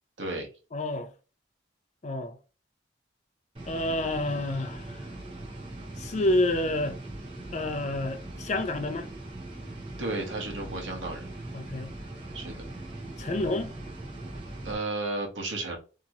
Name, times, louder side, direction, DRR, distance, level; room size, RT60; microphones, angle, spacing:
voice 1, 0.2-0.5 10.0-11.3 12.3-12.6 14.6-15.8, right 2 dB, 75° right, 1.0 m, -33 dB
voice 2, 0.7-1.1 2.0-2.4 3.7-5.1 6.0-7.0 7.5-9.1 11.5-11.9 13.2-13.7, left 1 dB, 35° left, 0.4 m, -29 dB
sound 1, 3.6-14.7, right 2 dB, 30° right, 0.8 m, -40 dB
2.9 x 2.8 x 2.4 m
head